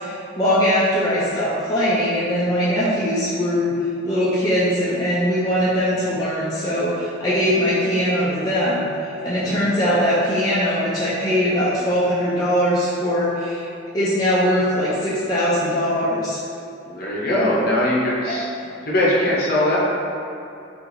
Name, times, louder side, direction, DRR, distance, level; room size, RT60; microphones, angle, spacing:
voice 1, 0.0-3.8 4.0-13.6 13.9-16.4 18.3-18.4, equal, 20° left, -10 dB, 0.4 m, -21 dB
voice 2, 9.3-9.6 16.8-18.5 18.8-19.8, left 1 dB, 50° left, -6 dB, 0.7 m, -21 dB
4.3 x 2.5 x 2.6 m, 2.7 s
head